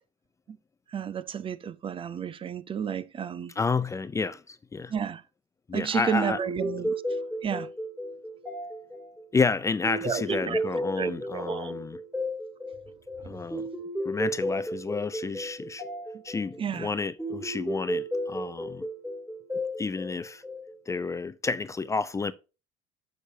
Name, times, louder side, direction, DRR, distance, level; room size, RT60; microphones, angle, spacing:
voice 1, 0.9-3.5 4.9-5.2 5.7-6.9 7.4-7.7 10.0-10.6 11.0-11.9 13.2-13.3 16.6-16.9, right 7 dB, 35° right, 0.6 m, -31 dB
voice 2, 3.6-4.9 5.7-6.4 9.3-12.0 13.3-13.7 14.0-15.8 16.2-18.9 19.8-20.4 20.9-22.3, left 4 dB, 20° left, 0.5 m, -30 dB
sound 1, 6.2-20.9, equal, 5° right, 2.9 m, -34 dB
9.9 x 6.5 x 2.8 m
supercardioid pair, 95°, 16 cm